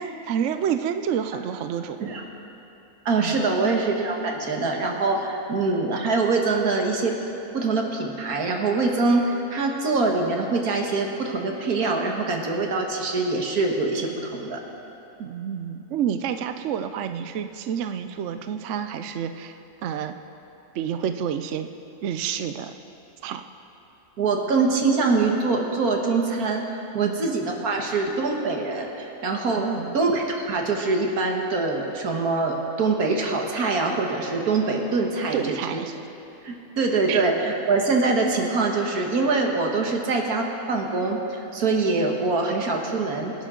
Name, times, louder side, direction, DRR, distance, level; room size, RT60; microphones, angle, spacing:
voice 1, 0.0-2.1 3.2-3.3 15.2-19.5 19.8-20.1 20.7-21.7 22.0-22.7 23.2-23.4 27.0-27.3 29.6-30.0 35.3-35.9 37.1-37.2, right 8 dB, 65° right, 9 dB, 0.8 m, -29 dB
voice 2, 3.1-7.1 7.5-14.6 24.2-29.7 29.9-35.8 36.4-43.3, right 3 dB, 80° right, 1 dB, 2.0 m, -24 dB
25.5 x 10.5 x 3.8 m, 2.9 s
omnidirectional pair, 1.6 m